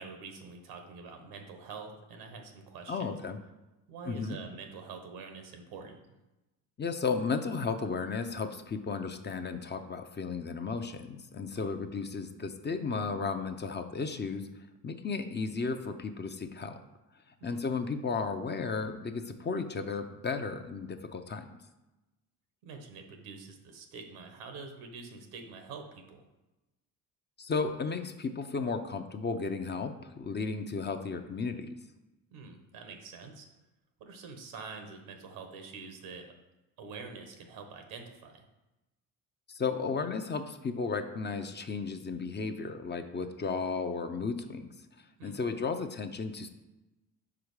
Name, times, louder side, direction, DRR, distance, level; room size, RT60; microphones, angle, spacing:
voice 1, 0.0-3.2 3.9-6.2 11.5-11.7 17.4-17.6 22.6-26.2 32.3-33.5 34.0-36.3 36.8-38.5 45.2-45.4, right 4 dB, 85° right, 5 dB, 1.1 m, -46 dB
voice 2, 2.9-3.4 4.1-4.4 6.8-14.5 14.8-16.8 17.4-21.6 27.4-31.8 39.5-44.7 45.2-46.5, left 4 dB, 30° left, 7 dB, 0.6 m, -34 dB
4.9 x 4.8 x 4.8 m, 1.0 s
supercardioid pair, 75°, 36 cm